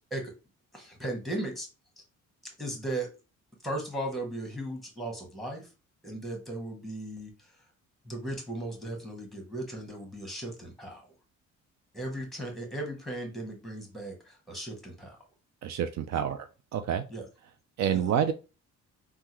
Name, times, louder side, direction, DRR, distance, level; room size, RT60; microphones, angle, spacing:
voice 1, 0.7-1.7 2.6-3.1 3.6-5.7 6.0-7.3 8.0-11.0 11.9-15.2 16.1-16.3 17.1-17.2 17.9-18.0, right 1 dB, ahead, 2 dB, 1.4 m, -36 dB
voice 2, 15.6-17.0 17.8-18.3, right 8 dB, 65° right, 9 dB, 0.4 m, -28 dB
3.5 x 2.2 x 2.9 m, 0.30 s
cardioid pair, 90°, 30 cm